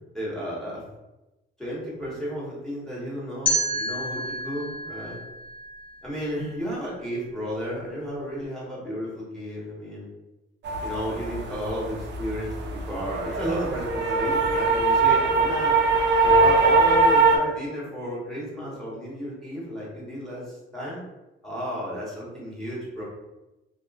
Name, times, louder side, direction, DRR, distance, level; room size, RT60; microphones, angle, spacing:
voice 1, 0.1-0.8 1.6-5.2 6.0-10.1 10.8-15.8 16.2-21.0 21.4-23.0, equal, ahead, -6 dB, 1.2 m, -33 dB
sound 1, 3.5-6.4, right 1 dB, 25° left, 0.9 m, -29 dB
sound 2, 10.6-17.4, right 3 dB, 60° right, 0.5 m, -21 dB
2.8 x 2.5 x 2.3 m, 0.99 s
cardioid pair, 90°, 20 cm